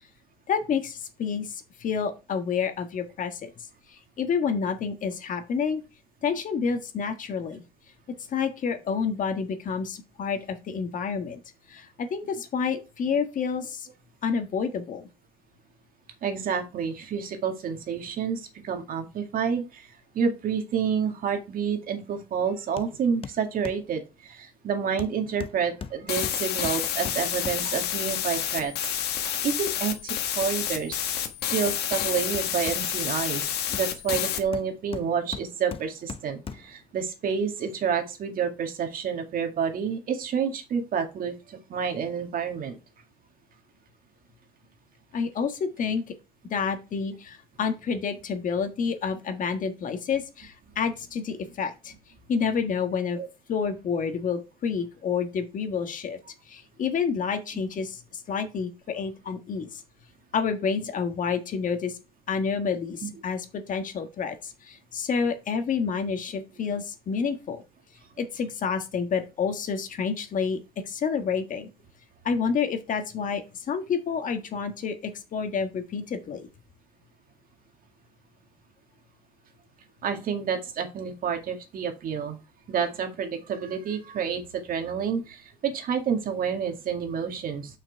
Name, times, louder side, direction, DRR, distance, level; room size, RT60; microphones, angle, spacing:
voice 1, 0.5-3.5 3.9-5.8 6.2-7.6 8.3-11.4 11.7-13.9 14.2-15.0 45.1-46.0 46.5-51.9 52.3-53.2 53.5-56.2 56.5-59.8 60.3-62.0 62.3-67.6 68.2-70.6 70.8-71.7 72.2-76.5, left 6 dB, 50° left, 7 dB, 1.6 m, -29 dB
voice 2, 16.2-19.9 20.1-31.0 31.5-42.8 53.1-53.3 63.0-63.1 80.0-82.4 82.7-87.8, right 7 dB, 55° right, 5 dB, 2.0 m, -29 dB
Hammer, 22.8-22.9 23.2-23.9 25.0-27.9 31.7-33.2 33.7-36.8 37.3-37.4, left 6 dB, 35° left, 0.8 m, -40 dB
sound 1, 26.1-34.4, left 10 dB, 75° left, 1.4 m, -29 dB
6.5 x 5.9 x 4.7 m, 0.29 s
cardioid pair, 110°, 17 cm